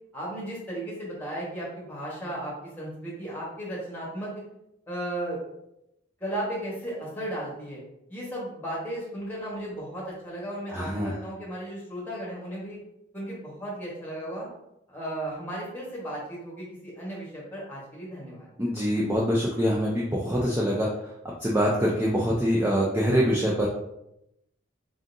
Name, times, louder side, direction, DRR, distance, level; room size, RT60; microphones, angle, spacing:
voice 1, 0.1-4.3 4.9-5.4 6.2-7.8 8.1-12.8 13.1-14.5 14.9-18.5, right 1 dB, 10° left, -5 dB, 1.3 m, -35 dB
voice 2, 10.7-11.2 18.6-20.9 21.4-23.7, equal, 10° right, -4 dB, 0.4 m, -24 dB
3.8 x 3.7 x 2.6 m, 0.84 s
head